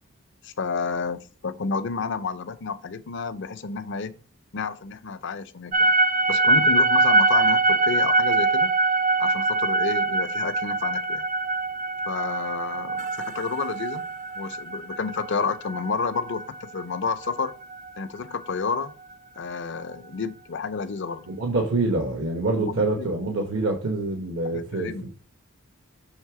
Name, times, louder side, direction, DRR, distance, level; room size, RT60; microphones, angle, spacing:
voice 1, 0.4-4.2 4.5-5.9 6.3-8.7 9.2-11.2 12.0-14.0 14.3-17.5 18.0-18.9 19.3-21.3 22.6-23.1 24.5-25.1, left 5 dB, 60° left, 0.6 m, -30 dB
sound 1, 5.7-17.9, right 2 dB, 40° right, 0.3 m, -23 dB
voice 2, 21.3-25.1, right 2 dB, 70° right, 1.0 m, -26 dB
6.5 x 3.3 x 4.7 m
head